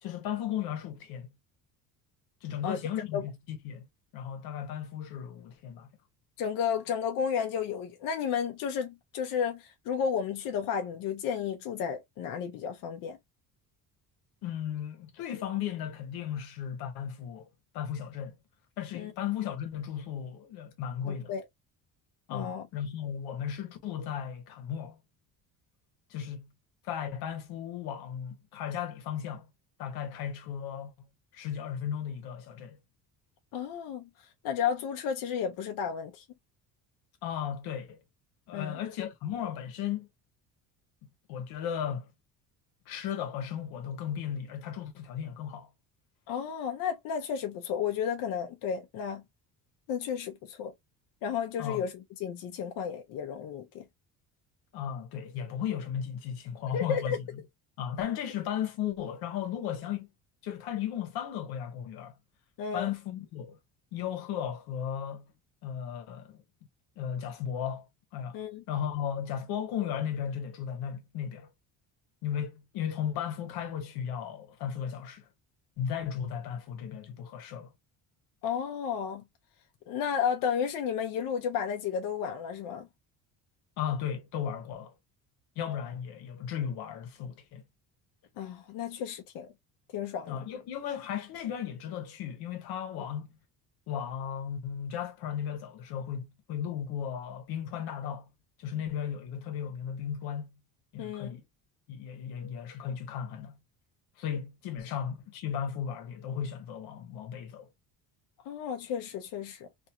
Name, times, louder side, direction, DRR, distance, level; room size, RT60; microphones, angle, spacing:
voice 1, 0.0-1.3 2.4-3.9 4.1-5.9 14.4-17.5 17.7-18.4 18.8-21.3 22.3-25.0 26.1-26.5 26.8-29.5 29.8-31.1 31.3-32.8 37.2-38.0 38.5-40.1 41.3-42.1 42.9-45.7 51.6-51.9 54.7-57.4 57.8-60.1 60.4-62.1 62.7-63.6 63.9-65.3 65.6-66.4 67.0-67.9 68.1-68.4 68.7-71.5 72.2-75.3 75.8-77.7 83.8-84.9 85.6-87.6 90.3-93.3 93.9-98.3 98.6-100.6 100.9-101.4 101.9-103.6 104.2-107.7, left 9 dB, 90° left, 1.0 m, -35 dB
voice 2, 6.4-13.2 18.9-19.1 21.1-21.4 22.3-22.6 33.5-34.1 34.4-36.2 38.5-38.8 46.3-49.2 49.9-50.7 51.2-51.9 52.2-53.8 56.7-57.2 62.6-62.9 68.3-68.6 78.4-79.2 79.9-82.9 88.4-89.5 89.9-90.4 101.0-101.4 108.5-109.7, left 7 dB, 65° left, 0.6 m, -32 dB
2.8 x 2.6 x 2.2 m
cardioid pair, 165°, 37 cm